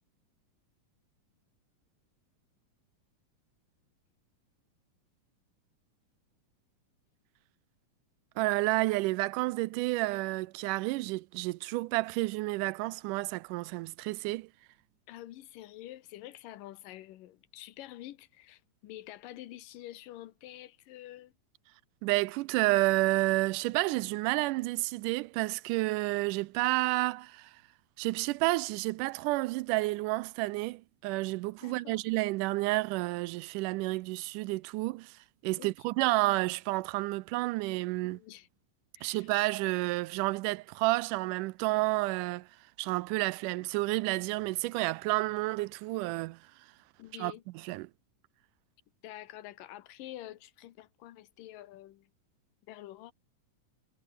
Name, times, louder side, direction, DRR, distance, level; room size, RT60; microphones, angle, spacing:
voice 1, 8.4-14.5 22.0-27.5 28.0-35.2 35.4-38.2 39.0-42.5 42.8-46.4 47.2-47.3 47.6-47.9, right 21 dB, 80° right, 2.0 m, -30 dB
voice 2, 15.1-21.3 31.6-32.0 35.6-35.7 36.0-36.2 38.0-38.5 39.0-39.3 47.0-47.4 49.0-52.1 52.7-53.1, left 14 dB, 85° left, 2.8 m, -47 dB
omnidirectional pair, 3.8 m